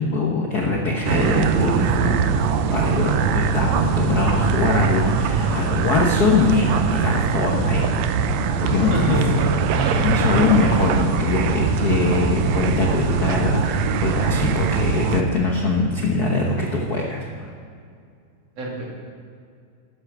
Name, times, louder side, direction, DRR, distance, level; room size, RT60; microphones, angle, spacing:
voice 1, 0.0-2.2 2.7-8.1 8.6-9.2 10.0-17.5, left 3 dB, 65° left, 0 dB, 0.9 m, -22 dB
sound 1, 1.1-15.2, right 5 dB, 75° right, 1.8 m, -22 dB
voice 2, 8.6-10.5 10.8-11.0 11.7-12.0 18.6-18.8, right 1 dB, 55° right, -3 dB, 3.7 m, -27 dB
13.0 x 9.6 x 6.0 m, 2.3 s
omnidirectional pair, 3.4 m